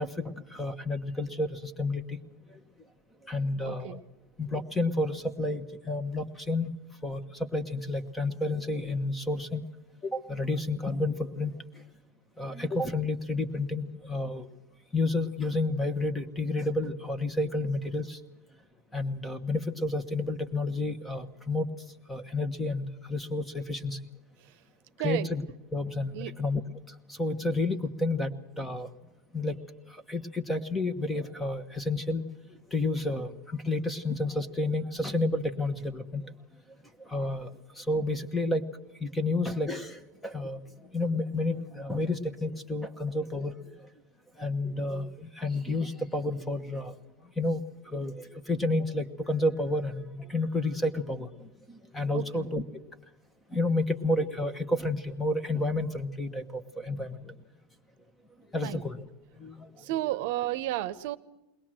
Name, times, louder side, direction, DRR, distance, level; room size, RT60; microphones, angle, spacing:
voice 1, 0.0-2.2 2.5-2.6 3.3-4.0 4.4-6.7 7.0-9.6 10.0-11.5 12.4-14.5 14.9-18.2 18.9-21.7 22.1-24.0 25.0-25.4 25.7-26.6 26.9-28.3 28.6-28.9 29.3-29.6 29.9-32.2 32.7-36.2 37.0-38.6 39.0-43.5 44.4-46.9 47.4-47.6 47.9-52.6 53.5-57.3 58.5-59.0 59.4-60.0, left 2 dB, 5° left, 12 dB, 1.0 m, -30 dB
voice 2, 3.7-4.0 25.0-25.3 26.1-26.3 52.1-52.4 58.6-58.8 59.8-61.2, right 15 dB, 55° right, 14 dB, 0.9 m, -32 dB
22.0 x 19.5 x 7.6 m, 1.0 s
supercardioid pair, 170°, 0 cm